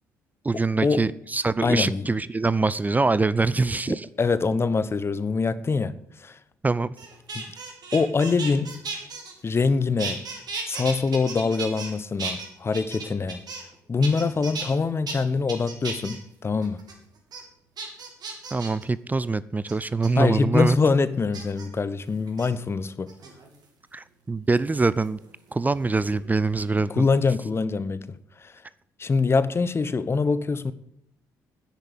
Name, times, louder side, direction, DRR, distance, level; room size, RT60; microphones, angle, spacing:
voice 1, 0.4-4.1 6.6-6.9 18.5-20.8 23.9-25.2 25.5-27.1, right 3 dB, 15° right, 0.5 m, -24 dB
voice 2, 1.6-2.1 3.9-6.4 7.3-7.4 7.9-8.8 9.4-10.2 10.7-13.5 13.9-16.8 20.2-23.1 26.9-28.5 29.0-30.7, left 4 dB, 25° left, 0.9 m, -24 dB
sound 1, 7.0-9.7 10.0-11.9 12.2-13.7 14.0-14.7 15.1-15.2 15.5-16.2 16.6-16.9 17.3-17.4 17.8-18.8 19.7-20.1 21.3-21.7 22.3-22.5 23.1-23.6 25.1-26.2 26.5-26.9, right 4 dB, 45° right, 3.1 m, -35 dB
10.5 x 8.3 x 9.5 m
figure-of-eight pair, 45°, 9 cm